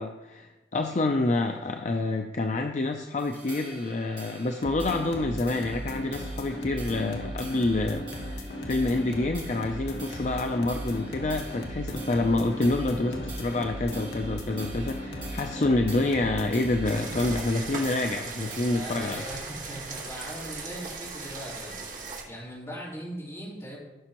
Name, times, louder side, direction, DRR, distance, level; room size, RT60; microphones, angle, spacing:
voice 1, 0.0-19.2, left 2 dB, 40° left, 5 dB, 0.5 m, -27 dB
sound 1, 3.2-21.8, right 3 dB, 30° right, 2.1 m, -47 dB
sound 2, 4.6-17.5, equal, 75° left, 1.3 m, -36 dB
sound 3, 16.8-22.2, right 4 dB, 50° right, 1.9 m, -38 dB
voice 2, 18.7-21.9 22.3-23.8, equal, 15° left, -7 dB, 3.5 m, -40 dB
15.5 x 6.0 x 3.0 m, 1.1 s
head